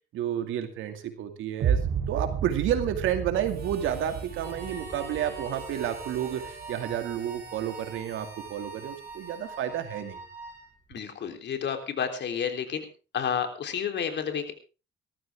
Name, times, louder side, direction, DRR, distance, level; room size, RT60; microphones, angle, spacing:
voice 1, 0.1-1.8 2.1-10.2, right 10 dB, 90° right, 7 dB, 2.4 m, -30 dB
sound 1, 1.6-7.6, right 7 dB, 70° right, 2.8 m, -33 dB
Harmonica, 3.4-10.3, right 3 dB, 55° right, 4.5 m, -47 dB
Wind instrument woodwind instrument, 4.4-10.8, right 3 dB, 10° right, 6.6 m, -45 dB
voice 2, 10.9-12.9 13.1-14.5, left 7 dB, 65° left, 6 dB, 3.6 m, -30 dB
19.5 x 14.0 x 3.6 m, 0.33 s
cardioid pair, 90°, 20 cm